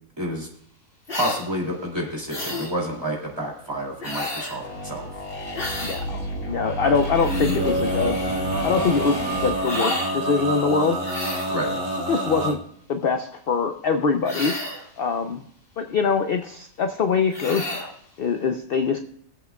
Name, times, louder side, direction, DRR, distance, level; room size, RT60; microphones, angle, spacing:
voice 1, 0.2-0.5 1.1-5.1 6.8-7.0 11.5-11.8, equal, 15° right, -2 dB, 2.6 m, -29 dB
sound 1, 1.1-1.4 2.3-2.7 4.0-4.6 5.5-6.0 7.0-7.6 9.6-10.1 11.0-11.6 14.2-14.9 17.3-17.9, left 2 dB, 40° left, 2.3 m, -31 dB
sound 2, 4.6-9.7, equal, 75° left, 3.7 m, -31 dB
voice 2, 5.8-8.2 8.6-11.0 12.1-12.6 12.9-14.5 15.0-15.4 15.8-17.9 18.2-19.0, left 5 dB, 55° left, 7 dB, 0.6 m, -23 dB
Male singing, 7.2-12.5, right 1 dB, 55° right, 2.3 m, -27 dB
20.5 x 7.9 x 2.3 m, 0.65 s
omnidirectional pair, 1.5 m